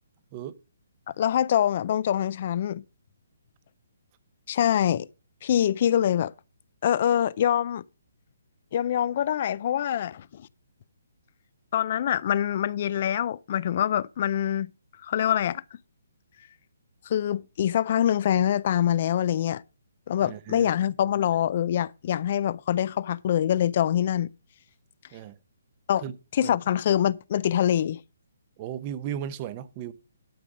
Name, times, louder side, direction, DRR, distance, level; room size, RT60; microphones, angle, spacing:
voice 1, 1.1-2.8 4.5-5.1 5.4-6.3 6.8-7.8 8.7-10.5 11.7-14.7 15.0-15.6 17.1-19.6 20.1-24.3 25.9-26.0 26.3-28.0, left 10 dB, 45° left, 0.4 m, -24 dB
voice 2, 20.2-20.7 25.1-25.4 26.0-26.1 26.4-26.6 28.6-29.9, right 10 dB, 30° right, 0.7 m, -35 dB
12.0 x 5.1 x 6.0 m
hypercardioid pair, 160°, 0 cm